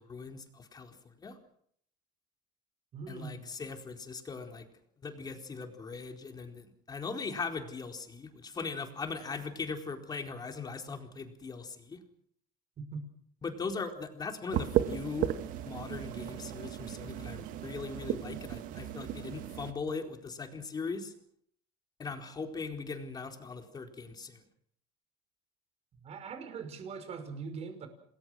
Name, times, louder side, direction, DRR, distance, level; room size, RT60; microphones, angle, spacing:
voice 1, 0.0-1.4 3.1-4.7 5.0-12.0 13.4-15.3 15.7-21.1 22.0-24.4, left 4 dB, 25° left, 4 dB, 4.3 m, -40 dB
voice 2, 2.9-3.5 12.8-13.0 26.0-27.9, right 5 dB, 45° right, 8 dB, 5.9 m, -41 dB
sound 1, 14.5-19.7, right 12 dB, 70° right, 2.1 m, -35 dB
28.5 x 20.5 x 6.3 m, 0.65 s
cardioid pair, 115°, 15 cm